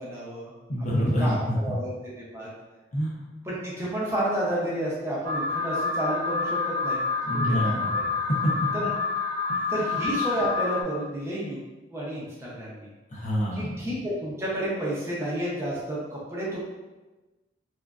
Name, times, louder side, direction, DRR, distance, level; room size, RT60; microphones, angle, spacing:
voice 1, 0.0-0.5 1.2-1.9 2.2-2.5 3.5-7.0 7.6-8.0 8.7-8.9 9.7-11.6 11.9-12.9 13.5-16.6, right 1 dB, 15° right, -7 dB, 0.5 m, -30 dB
voice 2, 0.7-1.6 2.9-3.1 7.2-8.1 8.4-8.5 9.5-9.7 13.1-13.8, equal, 40° left, -4 dB, 0.6 m, -27 dB
Alarm, 5.2-10.8, left 4 dB, 75° right, 0.3 m, -28 dB
3.0 x 2.4 x 2.3 m, 1.2 s
head